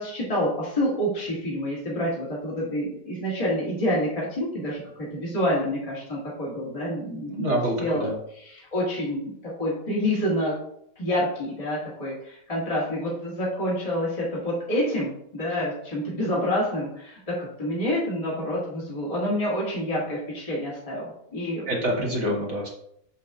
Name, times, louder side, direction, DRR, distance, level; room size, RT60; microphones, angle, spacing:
voice 1, 0.0-4.8 5.1-7.5 7.8-8.1 8.6-10.5 11.0-21.7, equal, 20° left, -6 dB, 2.0 m, -28 dB
voice 2, 7.3-8.1 21.7-22.7, equal, 45° right, -2 dB, 1.8 m, -26 dB
7.0 x 6.5 x 2.5 m, 0.71 s
omnidirectional pair, 1.8 m